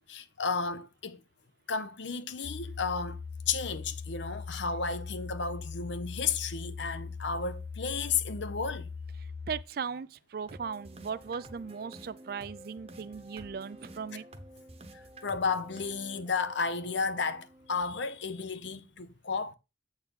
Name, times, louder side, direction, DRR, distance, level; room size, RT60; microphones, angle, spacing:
voice 1, 0.1-1.2 1.7-3.2 3.5-8.9 14.9-19.5, left 5 dB, 75° left, 0.8 m, -33 dB
sound 1, 2.4-9.6, left 5 dB, 40° left, 0.3 m, -40 dB
voice 2, 9.5-14.3, right 6 dB, 50° right, 0.4 m, -38 dB
sound 2, 10.5-18.4, right 1 dB, 30° right, 0.9 m, -51 dB
8.0 x 4.1 x 5.4 m
head